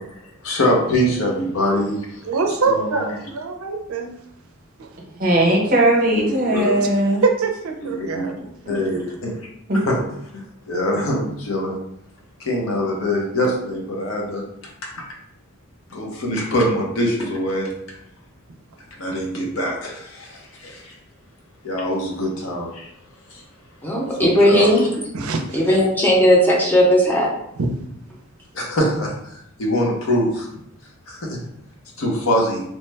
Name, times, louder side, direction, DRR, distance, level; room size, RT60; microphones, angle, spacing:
voice 1, 0.4-2.2 2.7-3.1 6.2-6.7 7.8-8.3 8.7-9.3 9.8-10.0 10.3-11.8 12.4-14.4 15.9-17.7 19.0-20.9 21.6-22.9 23.3-23.4 24.2-24.7 28.5-30.5 31.1-31.3 32.0-32.6, equal, 75° left, -1 dB, 0.8 m, -23 dB
voice 2, 2.3-4.1 4.8-4.9 6.8-6.9 7.2-8.4 25.1-25.6 27.6-27.7, right 4 dB, 75° right, 4 dB, 0.5 m, -23 dB
voice 3, 5.2-7.2 9.7-9.8, right 1 dB, 40° right, -1 dB, 0.8 m, -18 dB
voice 4, 23.8-24.9 25.5-27.3, equal, 10° left, -3 dB, 0.6 m, -16 dB
3.0 x 2.1 x 3.3 m, 0.74 s
head